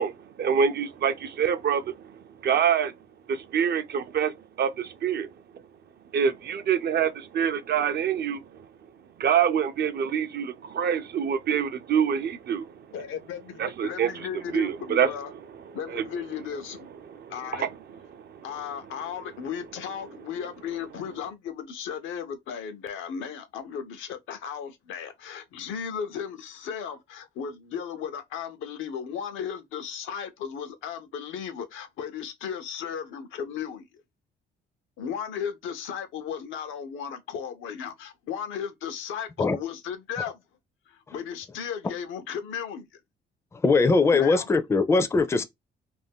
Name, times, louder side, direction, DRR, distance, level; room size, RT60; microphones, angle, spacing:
voice 1, 0.0-2.9 3.3-5.3 6.1-8.4 9.2-12.7 13.6-14.3 14.5-15.1 15.9-16.0 17.1-17.7 18.1-18.4, right 7 dB, 55° right, 0.4 m, -26 dB
voice 2, 12.9-15.3 15.7-16.9 17.3-17.7 18.4-34.0 35.0-40.4 40.9-42.9 44.1-44.5, left 7 dB, 85° left, 0.6 m, -35 dB
voice 3, 43.6-45.4, left 3 dB, 15° left, 0.4 m, -21 dB
2.5 x 2.2 x 3.5 m
cardioid pair, 90°, 20 cm